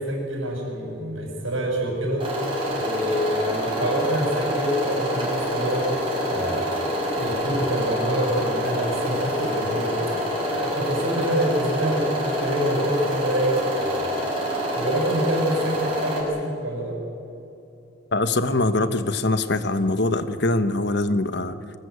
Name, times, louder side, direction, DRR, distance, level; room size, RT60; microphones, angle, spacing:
voice 1, 0.0-2.3 2.8-6.0 6.3-6.7 7.2-10.1 10.5-14.2 14.7-17.0, equal, 70° right, 1 dB, 6.3 m, -26 dB
sound 1, 2.2-16.2, equal, 25° right, 5.8 m, -27 dB
voice 2, 18.1-21.6, left 2 dB, 55° left, 11 dB, 1.1 m, -23 dB
24.0 x 19.0 x 8.2 m, 2.8 s
head